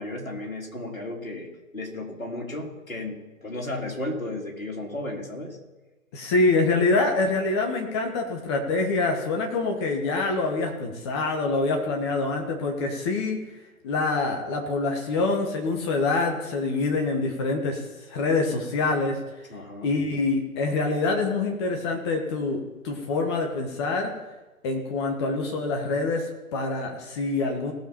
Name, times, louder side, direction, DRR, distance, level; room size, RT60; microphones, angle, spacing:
voice 1, 0.0-5.6 19.5-19.9, left 2 dB, 70° left, -1 dB, 3.5 m, -34 dB
voice 2, 6.1-13.4 13.8-19.2 19.8-24.2 24.6-27.7, left 3 dB, 20° left, 2 dB, 1.1 m, -25 dB
18.5 x 7.0 x 4.4 m, 1.1 s
figure-of-eight pair, 135°, 42 cm